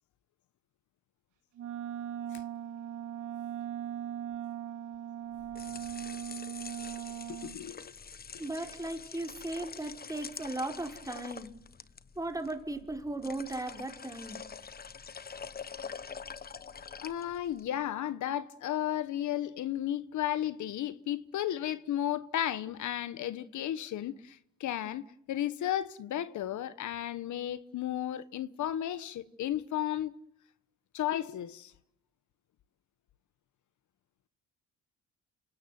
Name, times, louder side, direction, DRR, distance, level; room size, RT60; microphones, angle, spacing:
Wind instrument woodwind instrument, 1.6-7.6, right 10 dB, 80° right, 2.9 m, -39 dB
sound 1, 5.3-17.7, left 6 dB, 30° left, 1.1 m, -46 dB
voice 1, 7.3-7.9 16.6-16.7 17.0-30.1 30.9-31.7, left 11 dB, 75° left, 1.3 m, -34 dB
voice 2, 8.4-11.5 12.2-14.4, right 2 dB, 10° right, 4.7 m, -37 dB
28.0 x 18.0 x 9.4 m
cardioid pair, 90°, 30 cm